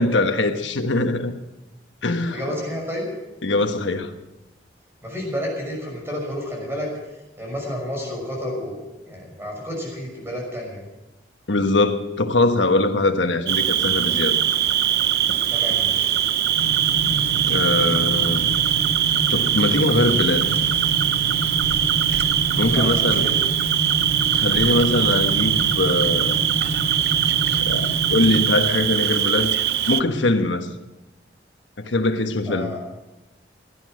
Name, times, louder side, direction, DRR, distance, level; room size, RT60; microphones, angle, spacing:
voice 1, 0.0-1.3 2.0-2.4 3.4-4.1 11.5-14.4 17.5-18.5 19.3-20.5 22.6-23.3 24.4-26.4 27.6-27.9 28.1-29.5 29.9-30.7 31.8-32.7, left 2 dB, 85° left, 7 dB, 1.3 m, -22 dB
voice 2, 2.3-3.0 5.0-6.9 7.4-10.8 15.5-16.1 22.6-23.4 32.5-32.8, equal, 15° right, -1 dB, 6.0 m, -30 dB
Cricket, 13.4-30.0, right 11 dB, 60° right, 0.6 m, -21 dB
sound 1, 14.5-27.6, left 1 dB, 35° left, 2.1 m, -42 dB
sound 2, 16.6-28.4, right 1 dB, 65° left, 2.4 m, -29 dB
17.5 x 11.5 x 6.4 m, 1.0 s
head